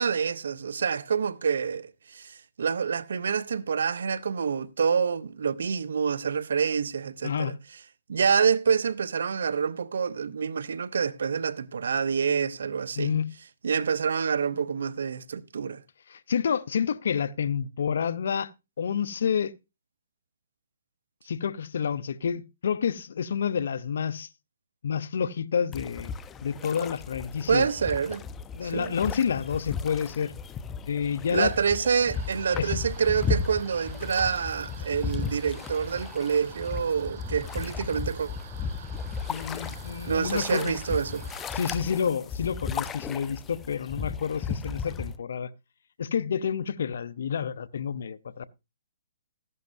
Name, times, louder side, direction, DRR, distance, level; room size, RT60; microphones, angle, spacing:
voice 1, 0.0-7.5 8.1-13.1 13.6-15.8 27.5-28.2 28.6-28.9 31.3-38.3 40.0-41.2, right 6 dB, 75° right, 0.8 m, -27 dB
voice 2, 7.2-7.6 13.0-13.3 16.1-18.5 18.8-19.5 21.3-24.3 24.8-26.1 26.4-27.7 28.5-30.3 30.9-31.5 32.5-32.8 39.3-40.7 41.5-45.5 46.0-48.5, left 7 dB, 65° left, 0.7 m, -29 dB
sound 1, 25.7-45.2, left 5 dB, 15° left, 0.6 m, -35 dB
sound 2, 32.1-41.8, right 9 dB, 50° right, 1.1 m, -48 dB
14.5 x 11.0 x 2.6 m
hypercardioid pair, 150°, 0 cm